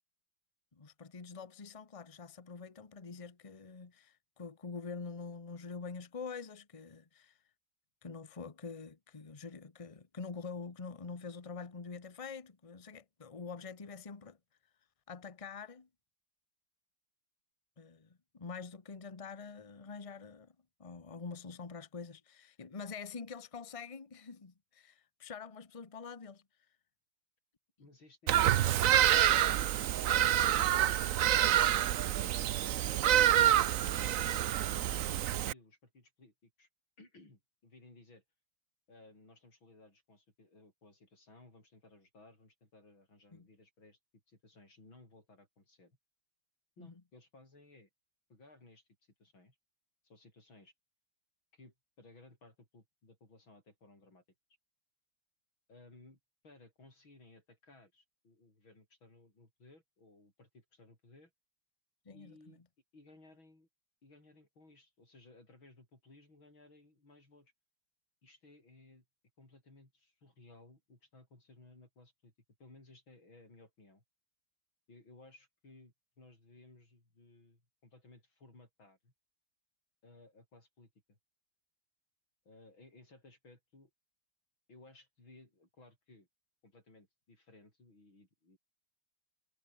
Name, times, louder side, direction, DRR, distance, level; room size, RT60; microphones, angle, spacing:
voice 1, 0.7-7.4 8.0-14.4 15.1-15.9 17.8-26.4 34.0-34.2 43.3-43.5 46.8-46.9 62.0-62.6, left 5 dB, 20° left, 1.1 m, -46 dB
voice 2, 27.8-29.7 30.1-33.1 34.2-36.7 37.0-38.2 38.9-44.0 44.3-46.0 46.8-47.9 48.3-49.6 50.0-50.7 51.5-54.2 55.7-61.3 62.1-62.6 62.9-63.7 64.0-67.5 68.2-69.1 69.4-72.3 72.6-74.0 74.9-79.1 80.0-81.2 82.5-83.9 84.7-86.3 86.6-88.6, left 2 dB, 70° left, 9.0 m, -60 dB
Bird vocalization bird call bird song, 28.3-35.5, right 12 dB, 90° right, 0.7 m, -27 dB
omnidirectional pair, 2.3 m